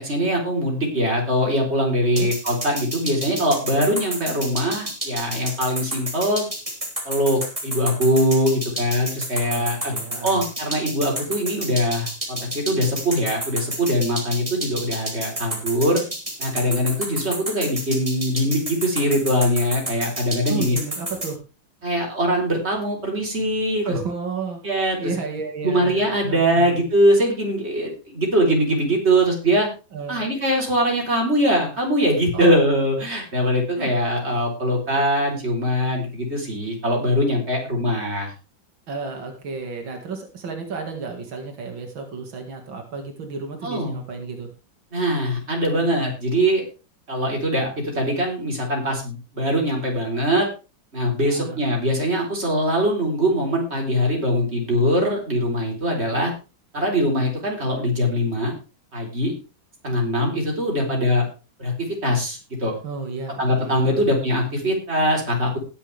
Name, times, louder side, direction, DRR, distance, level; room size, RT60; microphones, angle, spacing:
voice 1, 0.0-6.4 7.0-9.9 10.2-16.0 16.4-20.8 21.8-24.0 24.6-25.1 25.6-29.7 30.1-38.3 43.6-44.0 44.9-46.6 47.1-50.5 50.9-56.3 56.7-58.5 58.9-59.3 59.8-61.3 61.6-62.7 63.4-65.6, equal, 30° right, 0 dB, 4.2 m, -22 dB
sound 1, 2.2-21.3, right 1 dB, 15° right, 3.2 m, -30 dB
voice 2, 9.4-10.4 20.5-21.4 23.8-24.6 25.0-26.8 29.9-30.2 32.3-32.7 33.8-33.9 38.9-44.5 51.2-51.6 62.8-64.0, right 4 dB, 90° right, 3 dB, 2.9 m, -32 dB
20.0 x 7.2 x 3.4 m, 0.31 s
omnidirectional pair, 2.1 m